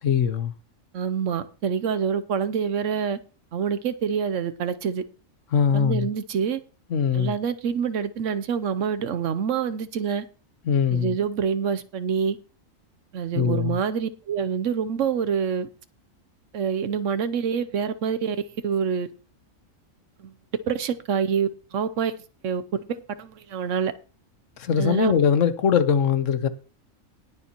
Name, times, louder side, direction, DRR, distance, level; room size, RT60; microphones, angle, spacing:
voice 1, 0.0-0.5 5.5-6.1 6.9-7.4 10.6-11.2 13.3-13.8 24.6-26.5, left 7 dB, 70° left, 1.2 m, -21 dB
voice 2, 0.9-3.2 3.5-5.0 5.7-6.6 7.1-10.2 10.9-12.4 13.1-15.7 16.5-19.1 20.2-20.3 20.7-22.2 22.4-22.6 22.9-23.9 24.8-25.2, right 7 dB, 70° right, 1.0 m, -26 dB
19.5 x 6.9 x 2.9 m
omnidirectional pair, 1.4 m